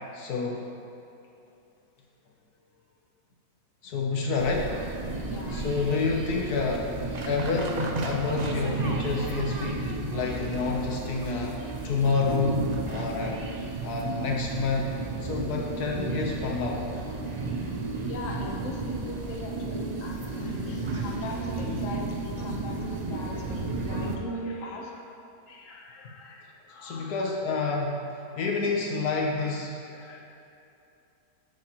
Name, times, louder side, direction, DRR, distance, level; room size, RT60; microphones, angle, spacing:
voice 1, 0.1-0.7 3.8-4.7 5.5-6.9 7.2-11.6 11.8-13.4 13.8-14.8 15.2-16.8 26.8-28.0 28.4-29.7, left 4 dB, 80° left, -1 dB, 1.4 m, -28 dB
sound 1, 4.4-24.2, right 3 dB, 50° right, 0.5 m, -33 dB
voice 2, 5.3-5.6 17.4-17.5 18.1-25.0 25.5-27.3 27.7-27.8 29.1-29.6 29.9-30.2, left 2 dB, 55° left, -1 dB, 1.4 m, -40 dB
13.0 x 7.6 x 3.0 m, 2.7 s
omnidirectional pair, 1.7 m